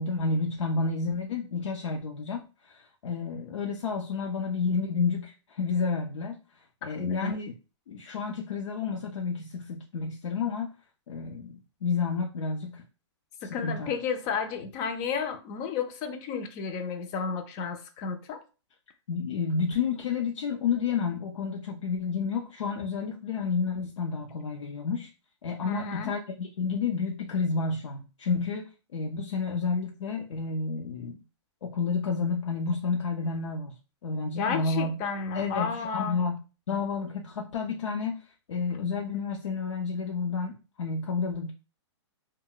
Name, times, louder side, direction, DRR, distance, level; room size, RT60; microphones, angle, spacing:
voice 1, 0.0-7.5 7.9-10.7 11.1-12.8 13.4-13.9 19.1-25.1 25.4-28.6 28.9-31.2 31.6-33.7 34.0-34.9 35.3-41.5, left 4 dB, 90° left, 0.5 m, -30 dB
voice 2, 7.0-7.3 13.4-18.4 25.6-26.1 34.4-36.2, left 6 dB, 25° left, 0.3 m, -32 dB
2.1 x 2.1 x 3.8 m
hypercardioid pair, 155°, 15 cm